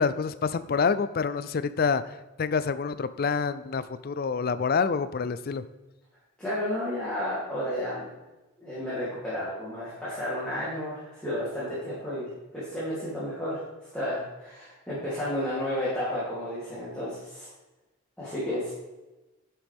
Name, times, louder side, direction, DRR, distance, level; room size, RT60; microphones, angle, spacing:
voice 1, 0.0-5.6, left 5 dB, 45° left, 14 dB, 0.4 m, -27 dB
voice 2, 6.4-8.1 8.6-13.6 13.9-17.5 18.2-18.7, left 1 dB, 5° left, -11 dB, 3.0 m, -32 dB
11.0 x 7.4 x 3.5 m, 1.1 s
head